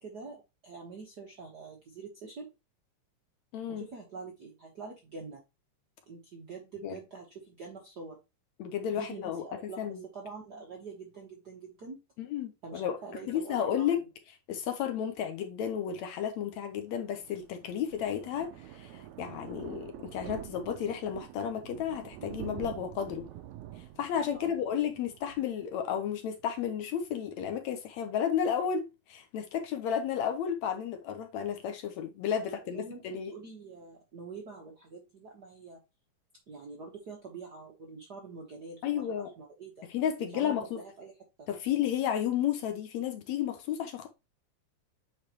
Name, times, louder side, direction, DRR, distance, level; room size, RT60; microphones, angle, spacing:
voice 1, 0.0-2.5 3.7-5.4 6.1-8.2 8.9-12.0 12.6-13.9 24.3-24.6 32.4-35.8 36.5-39.9 40.2-41.1 41.4-41.5, right 4 dB, 55° right, 1.1 m, -45 dB
voice 2, 3.5-3.9 6.8-7.0 8.6-9.4 9.8-10.0 12.2-13.0 13.3-14.0 14.5-23.3 24.0-33.3 38.8-39.3 39.9-40.8 41.5-44.1, left 9 dB, 70° left, 2.0 m, -32 dB
Thunder, 16.9-26.3 26.6-26.8 27.2-27.3 27.4-27.5, right 12 dB, 75° right, 1.8 m, -46 dB
8.8 x 4.0 x 3.0 m
omnidirectional pair, 3.6 m